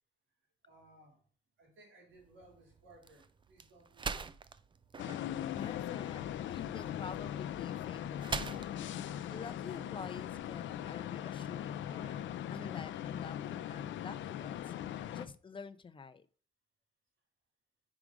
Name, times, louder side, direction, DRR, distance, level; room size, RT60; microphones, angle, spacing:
voice 1, 0.6-1.2 1.6-4.4, right 1 dB, 75° right, 3.6 m, -61 dB
sound 1, 2.1-10.4, right 5 dB, 25° right, 0.5 m, -45 dB
sound 2, 5.0-15.3, left 11 dB, 70° left, 0.5 m, -40 dB
voice 2, 5.5-6.2 6.5-8.7 9.3-14.7 15.1-16.3, left 5 dB, 25° left, 0.6 m, -48 dB
5.0 x 4.9 x 4.9 m
cardioid pair, 90°, 20 cm